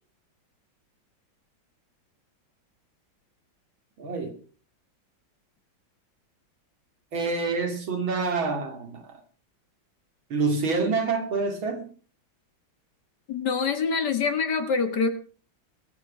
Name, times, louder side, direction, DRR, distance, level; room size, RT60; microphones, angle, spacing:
voice 1, 4.0-4.3 7.1-9.0 10.3-11.9, right 4 dB, 80° right, 3.3 m, -27 dB
voice 2, 13.3-15.1, left 5 dB, 60° left, 2.2 m, -25 dB
22.5 x 8.0 x 5.0 m
omnidirectional pair, 2.2 m